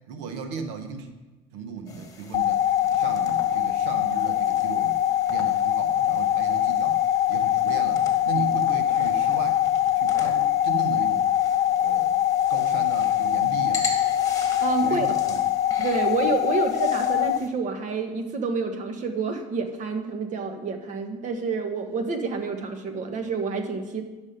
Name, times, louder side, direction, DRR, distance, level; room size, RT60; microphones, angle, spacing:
voice 1, 0.1-1.1 1.5-5.0 5.3-9.6 9.9-11.3 11.8-12.1 12.5-13.9 14.8-15.4, right 5 dB, 85° right, 7 dB, 1.1 m, -36 dB
sound 1, 1.9-17.5, left 3 dB, 20° left, 1.6 m, -41 dB
sound 2, 2.3-17.4, left 11 dB, 45° left, 0.5 m, -23 dB
voice 2, 14.6-15.2 15.8-24.0, right 4 dB, 50° right, 6 dB, 1.4 m, -28 dB
11.0 x 6.4 x 5.2 m, 1.1 s
supercardioid pair, 100°, 16 cm